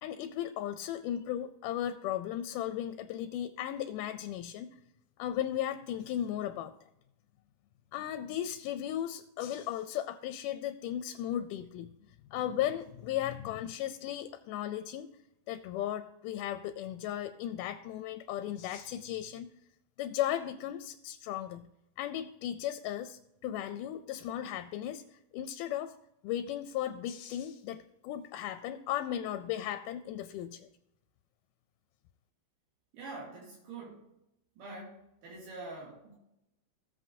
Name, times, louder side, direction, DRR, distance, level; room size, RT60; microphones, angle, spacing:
voice 1, 0.0-4.8 5.2-6.7 7.9-11.9 12.3-15.1 15.5-19.5 20.0-21.7 22.0-25.9 26.2-30.7, left 11 dB, 80° left, 9 dB, 2.0 m, -36 dB
voice 2, 32.9-34.0 34.6-35.0 35.2-36.2, right 3 dB, 75° right, -4 dB, 3.9 m, -44 dB
16.0 x 7.7 x 2.7 m, 0.85 s
omnidirectional pair, 3.8 m